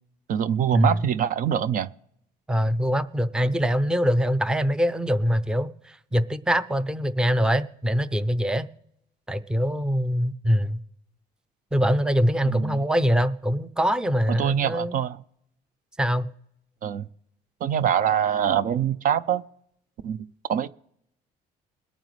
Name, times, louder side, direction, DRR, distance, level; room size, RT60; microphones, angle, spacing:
voice 1, 0.3-1.9 12.4-12.8 14.3-15.2 16.8-17.1 17.6-19.4 20.0-20.7, right 9 dB, 55° right, 0.5 m, -24 dB
voice 2, 2.5-8.7 9.3-10.8 11.7-15.0 16.0-16.3, equal, 5° right, 0.5 m, -23 dB
21.5 x 9.0 x 3.2 m
cardioid pair, 110°, 17 cm